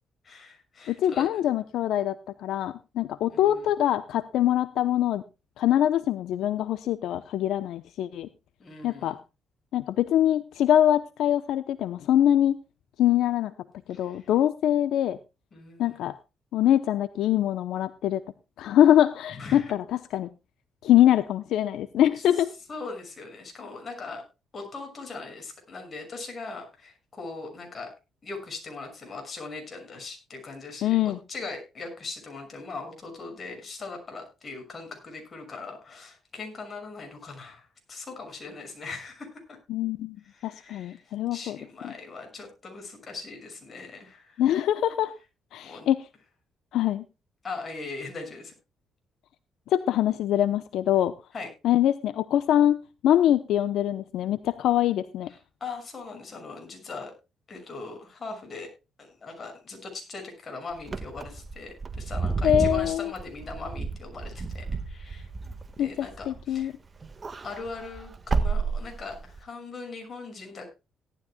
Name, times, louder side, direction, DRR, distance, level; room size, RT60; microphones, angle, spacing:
voice 1, 0.2-1.3 3.3-3.7 8.6-9.2 13.9-14.3 15.5-16.0 19.3-19.7 22.2-22.3 22.7-24.2 24.5-27.9 28.2-39.6 40.2-44.4 45.6-45.9 47.4-48.5 51.3-51.5 55.3-57.1 57.5-58.7 59.0-65.3 65.8-66.7 67.4-70.7, left 3 dB, 40° left, 4 dB, 6.3 m, -40 dB
voice 2, 0.9-2.2 2.4-5.2 5.6-8.3 8.8-9.2 9.7-12.6 13.0-13.5 13.9-15.2 15.8-16.1 16.5-18.2 18.6-19.8 20.1-20.3 20.8-22.5 30.8-31.2 39.7-40.2 40.4-41.6 41.8-41.9 44.4-45.1 45.5-46.0 46.7-47.0 49.7-51.1 51.6-52.8 53.0-55.3 62.4-63.1 65.8-66.7, left 11 dB, 80° left, 13 dB, 0.7 m, -23 dB
Wind / Car, 60.8-66.6 67.0-69.4, right 4 dB, 30° right, 1.6 m, -31 dB
17.5 x 12.5 x 2.2 m, 0.28 s
cardioid pair, 90°, 0 cm